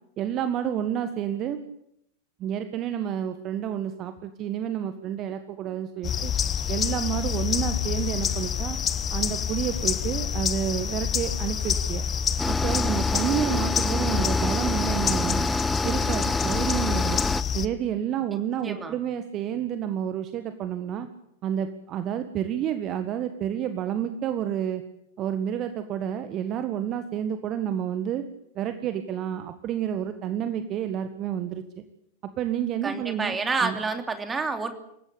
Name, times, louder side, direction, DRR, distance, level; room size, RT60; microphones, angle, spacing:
voice 1, 0.2-1.6 2.4-6.3 6.7-8.8 9.1-12.0 12.5-15.5 15.8-17.3 17.5-21.1 21.4-24.8 25.2-28.2 28.5-31.8 32.4-33.8, right 9 dB, 35° right, 9 dB, 1.6 m, -29 dB
sound 1, 6.0-17.7, left 7 dB, 25° left, 1.3 m, -27 dB
sound 2, 12.4-17.4, left 2 dB, 5° left, 0.9 m, -28 dB
voice 2, 18.6-18.9 32.8-34.7, right 4 dB, 15° right, 6 dB, 3.0 m, -28 dB
27.5 x 15.5 x 8.6 m, 0.77 s
figure-of-eight pair, 90°, 0 cm